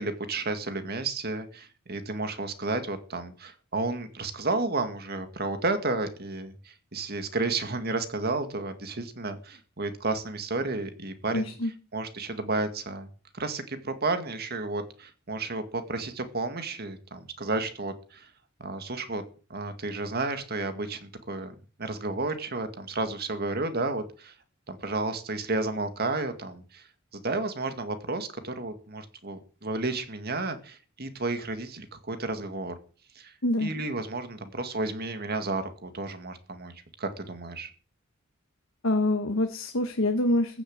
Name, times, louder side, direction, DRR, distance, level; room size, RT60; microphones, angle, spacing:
voice 1, 0.0-11.5 11.9-13.1 13.3-18.3 18.6-19.2 19.5-21.5 21.8-24.3 24.7-26.9 27.1-32.7 33.2-33.3 33.6-37.7, right 3 dB, 50° right, 8 dB, 2.0 m, -32 dB
voice 2, 11.3-11.7 33.4-33.7 38.8-40.6, left 1 dB, 70° left, 6 dB, 1.4 m, -26 dB
14.5 x 7.2 x 8.7 m, 0.38 s
head